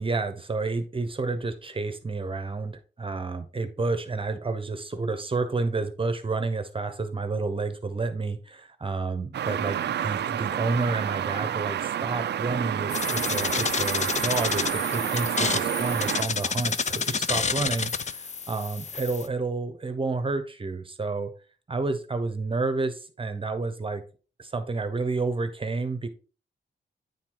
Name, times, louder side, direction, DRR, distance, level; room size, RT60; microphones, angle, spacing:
voice 1, 0.0-21.3 21.7-24.0 24.4-26.1, right 3 dB, 30° right, 9 dB, 0.9 m, -30 dB
sound 1, 9.3-16.2, right 10 dB, 70° right, 0.4 m, -29 dB
sound 2, 12.9-19.3, left 5 dB, 40° left, 0.5 m, -29 dB
9.3 x 4.6 x 3.8 m, 0.36 s
wide cardioid pair, 115°, 18 cm